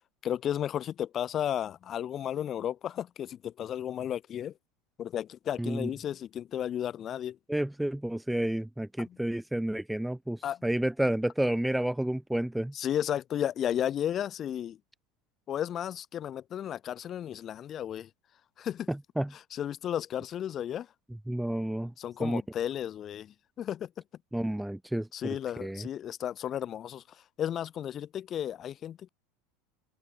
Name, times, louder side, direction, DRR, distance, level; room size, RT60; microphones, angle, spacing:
voice 1, 0.2-4.5 5.0-7.4 9.1-9.2 10.4-10.6 12.7-14.8 15.5-18.1 18.6-18.9 19.5-20.9 22.0-23.9 25.1-27.0 27.4-29.1, left 10 dB, 35° left, 7.1 m, -33 dB
voice 2, 5.6-5.9 7.5-12.7 18.9-19.3 21.3-21.9 22.2-22.4 24.3-25.9, right 1 dB, 5° right, 3.1 m, -30 dB
supercardioid pair, 135°, 0 cm